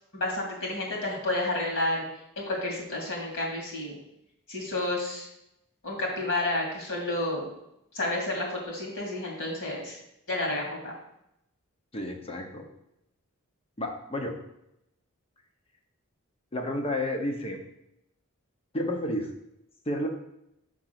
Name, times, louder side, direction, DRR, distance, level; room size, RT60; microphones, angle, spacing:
voice 1, 0.1-2.1 2.4-4.0 4.5-5.3 5.8-7.5 7.9-10.0 10.3-10.9, left 1 dB, 60° left, -1 dB, 2.4 m, -30 dB
voice 2, 11.9-12.7 13.8-14.4 16.5-17.6 18.7-19.3 19.9-20.1, left 1 dB, 25° left, 3 dB, 0.9 m, -31 dB
6.0 x 3.8 x 5.9 m, 0.82 s
head